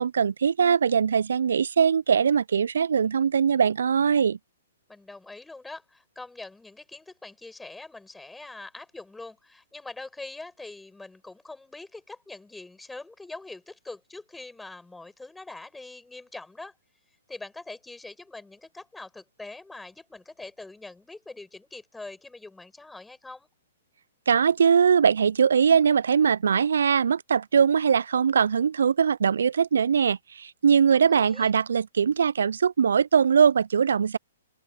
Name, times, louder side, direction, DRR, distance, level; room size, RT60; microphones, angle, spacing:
voice 1, 0.0-4.4 24.3-34.2, right 7 dB, 70° right, 0.4 m, -21 dB
voice 2, 4.9-16.8 17.3-23.5 30.9-31.5, left 2 dB, 5° left, 6.7 m, -43 dB
open air
figure-of-eight pair, 120°, 0 cm